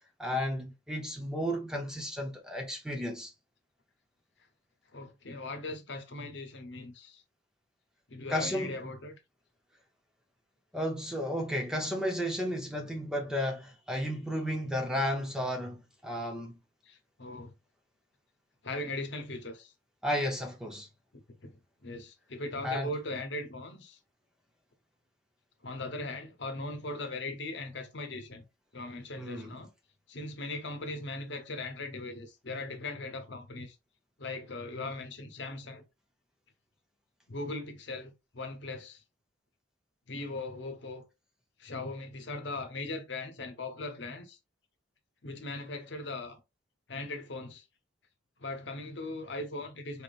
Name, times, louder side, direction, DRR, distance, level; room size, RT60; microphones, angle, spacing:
voice 1, 0.2-3.3 8.3-8.7 10.7-16.6 20.0-20.9 22.6-22.9 29.2-29.5, equal, 5° right, 0.7 m, -33 dB
voice 2, 4.9-7.2 8.1-9.2 16.8-17.5 18.6-19.7 21.4-24.0 25.6-28.5 28.7-29.7 30.1-33.8 34.2-35.8 37.3-39.0 40.1-41.0 41.6-44.4 45.2-46.4 46.9-47.6 48.4-50.0, left 2 dB, 65° left, 0.9 m, -39 dB
4.4 x 3.6 x 2.4 m
head